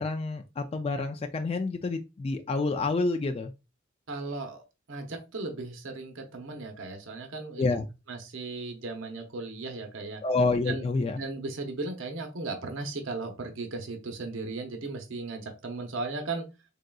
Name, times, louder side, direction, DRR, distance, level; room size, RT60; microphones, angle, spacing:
voice 1, 0.0-3.5 7.6-7.9 10.2-11.2, left 3 dB, 30° left, 5 dB, 0.3 m, -28 dB
voice 2, 4.1-4.6 4.9-7.6 8.1-10.2 10.7-10.8 11.2-16.5, right 3 dB, 80° right, 4 dB, 0.8 m, -36 dB
3.8 x 3.7 x 2.2 m, 0.27 s
head